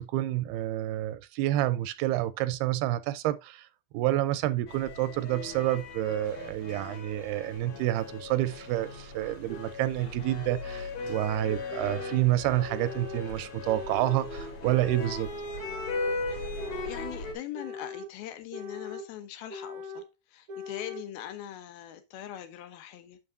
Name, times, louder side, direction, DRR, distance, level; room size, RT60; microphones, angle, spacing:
voice 1, 0.0-3.7 3.9-15.3, right 15 dB, 85° right, 2.5 m, -29 dB
sound 1, 4.7-17.3, left 3 dB, 50° left, 2.9 m, -38 dB
sound 2, 9.5-9.6 10.5-10.6 11.5-12.3 12.7-13.2 13.7-14.2 14.6-15.2 15.6-16.2 16.6-17.1 17.5-18.1 18.5-19.1 19.5-20.1 20.5-21.0, left 3 dB, 65° right, 1.5 m, -40 dB
voice 2, 16.8-20.0 20.3-23.2, left 11 dB, 75° left, 2.7 m, -41 dB
8.9 x 6.2 x 2.6 m
omnidirectional pair, 4.6 m